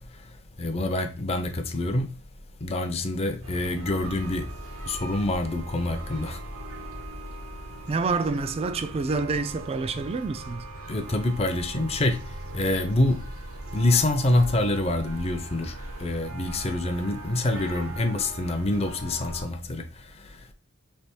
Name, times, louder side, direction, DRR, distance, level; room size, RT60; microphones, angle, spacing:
voice 1, 0.6-2.1 2.6-4.5 4.9-6.4 10.9-12.2 12.5-13.2 13.7-20.5, left 2 dB, 30° left, 0.5 m, -26 dB
sound 1, 3.4-19.5, right 1 dB, 85° right, 1.0 m, -39 dB
voice 2, 7.9-10.6, right 4 dB, 30° right, 0.3 m, -27 dB
3.3 x 3.0 x 4.3 m
head